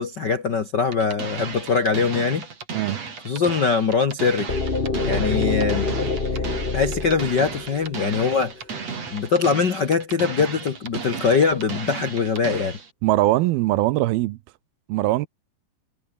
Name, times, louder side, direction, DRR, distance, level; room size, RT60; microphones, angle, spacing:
voice 1, 0.0-2.5 3.2-4.5 5.1-5.9 6.3-6.4 6.7-8.6 9.1-12.8, left 5 dB, 80° left, 0.9 m, -22 dB
sound 1, 0.9-12.9, right 5 dB, 45° right, 4.8 m, -34 dB
sound 2, 4.5-8.4, left 3 dB, 30° left, 1.0 m, -26 dB
voice 2, 13.0-14.4 14.9-15.3, right 17 dB, 80° right, 2.6 m, -21 dB
omnidirectional pair, 4.5 m